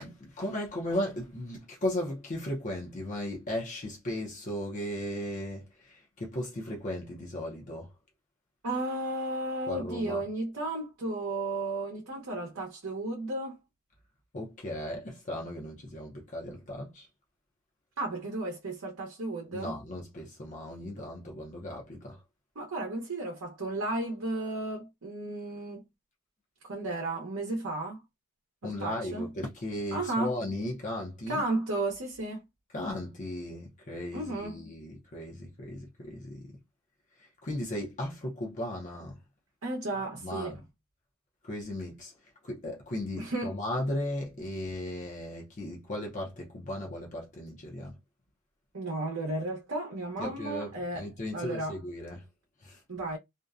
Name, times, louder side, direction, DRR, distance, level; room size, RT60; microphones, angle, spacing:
voice 1, 0.0-7.9 9.7-10.2 14.3-17.1 19.5-22.2 28.6-31.4 32.7-36.5 37.4-39.1 40.2-40.6 41.4-42.1 42.4-47.9 50.2-52.3 52.6-52.8, left 1 dB, 35° left, 0.6 m, -36 dB
voice 2, 8.6-13.6 18.0-19.8 22.6-25.9 26.6-28.0 28.6-29.3 29.9-30.3 31.3-32.4 34.1-34.6 39.6-40.6 43.2-43.6 48.7-51.1 51.3-51.8 52.9-53.2, right 2 dB, 65° right, 0.8 m, -33 dB
2.6 x 2.1 x 2.3 m
head